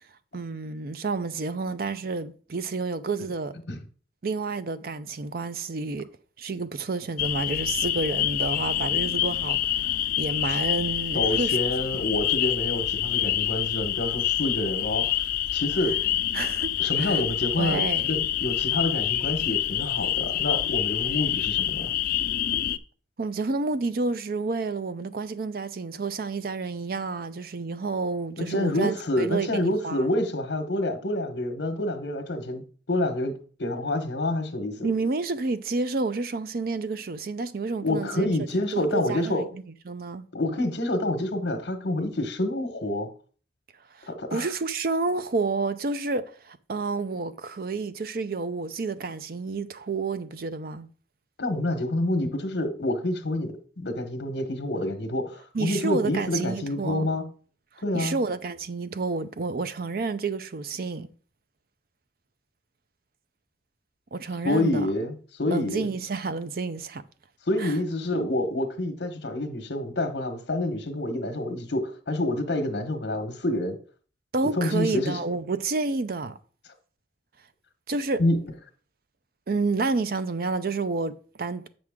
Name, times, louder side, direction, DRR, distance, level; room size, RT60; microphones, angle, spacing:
voice 1, 0.3-3.5 4.2-6.1 6.4-11.6 16.3-17.2 17.6-18.2 23.2-30.0 34.8-38.3 38.7-40.2 44.0-50.9 55.5-57.1 57.9-61.1 64.1-64.9 65.5-67.0 67.6-67.8 74.3-76.4 77.9-78.2 79.5-81.7, right 3 dB, 55° right, 0.5 m, -30 dB
sound 1, 7.2-22.8, left 12 dB, 50° left, 0.3 m, -27 dB
voice 2, 11.1-15.2 15.5-16.0 16.8-21.9 28.4-34.9 37.8-39.5 40.3-43.1 44.1-44.5 51.4-57.2 57.8-58.1 64.4-65.9 67.5-73.8 74.5-75.2 78.2-78.4, left 1 dB, 75° left, 1.1 m, -28 dB
7.6 x 6.1 x 3.6 m
head